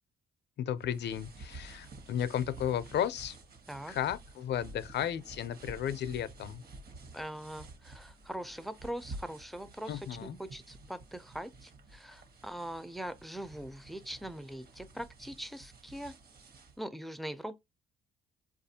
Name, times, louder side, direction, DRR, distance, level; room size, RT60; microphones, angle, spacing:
voice 1, 0.6-3.4 3.9-6.6 9.9-10.4, left 10 dB, 60° left, 0.5 m, -34 dB
sound 1, 0.8-16.8, right 2 dB, 50° right, 1.0 m, -51 dB
voice 2, 7.1-16.2 16.8-17.6, right 1 dB, ahead, 0.4 m, -42 dB
4.7 x 2.4 x 2.7 m
cardioid pair, 90°, 20 cm